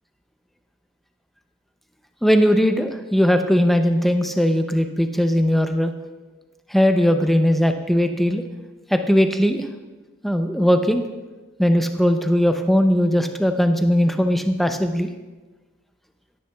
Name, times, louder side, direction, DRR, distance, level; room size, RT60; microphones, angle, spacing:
voice 1, 2.2-5.9 6.7-8.4 8.9-9.6 10.2-11.0 11.6-15.1, equal, ahead, 6 dB, 0.5 m, -19 dB
18.0 x 9.4 x 2.3 m, 1.2 s
head